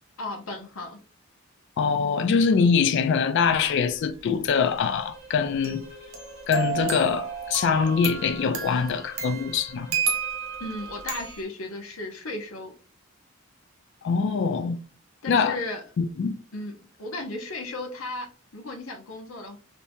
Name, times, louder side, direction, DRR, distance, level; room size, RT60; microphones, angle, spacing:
voice 1, 0.2-1.0 10.6-12.7 15.2-15.8 16.5-19.6, left 2 dB, 80° left, 0.8 m, -35 dB
voice 2, 1.8-5.8 6.5-9.9 14.0-14.8 15.3-15.6 16.0-16.4, left 5 dB, 60° left, 0.3 m, -23 dB
sound 1, 3.4-3.9 5.6-11.4, right 7 dB, 75° right, 0.9 m, -32 dB
sound 2, 4.5-11.4, right 3 dB, 35° right, 1.2 m, -49 dB
3.5 x 2.7 x 2.6 m
head